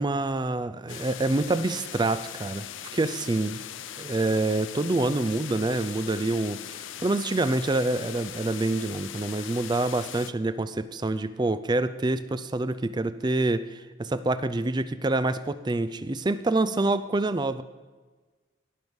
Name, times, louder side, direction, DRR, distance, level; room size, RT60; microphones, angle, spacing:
voice 1, 0.0-2.7 2.9-3.6 4.0-17.6, right 2 dB, 20° right, 13 dB, 0.4 m, -26 dB
sound 1, 0.9-10.3, left 10 dB, 65° left, 0.5 m, -40 dB
18.5 x 6.3 x 5.3 m, 1.3 s
head